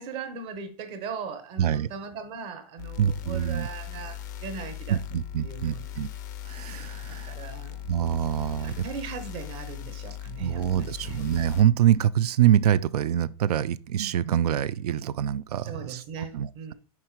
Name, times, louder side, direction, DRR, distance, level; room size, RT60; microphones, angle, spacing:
voice 1, 0.0-5.0 5.4-5.9 7.1-7.8 8.6-11.2 15.6-16.7, right 6 dB, 25° right, 0.7 m, -39 dB
voice 2, 1.6-1.9 3.0-3.7 4.9-6.1 6.5-7.4 7.8-8.9 10.4-16.7, right 10 dB, 85° right, 0.4 m, -25 dB
sound 1, 2.8-11.6, left 10 dB, 30° left, 0.4 m, -39 dB
4.8 x 4.4 x 4.4 m
supercardioid pair, 180°, 19 cm